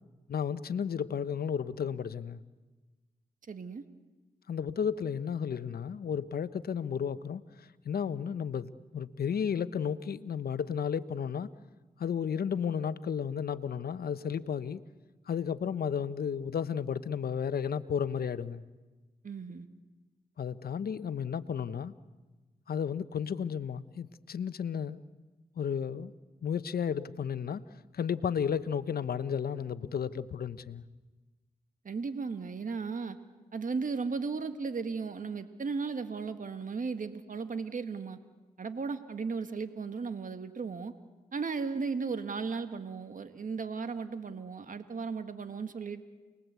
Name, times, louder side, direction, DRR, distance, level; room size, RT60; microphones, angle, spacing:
voice 1, 0.3-2.4 4.5-11.5 12.0-14.8 15.3-18.6 20.4-21.9 22.7-25.0 25.6-26.1 26.4-27.6 27.9-30.8, left 7 dB, 70° left, 1.0 m, -33 dB
voice 2, 3.5-3.8 19.2-19.7 31.9-33.2 33.5-38.2 38.6-40.9 41.3-46.0, right 5 dB, 55° right, 1.7 m, -35 dB
28.5 x 21.0 x 8.3 m
supercardioid pair, 45°, 16 cm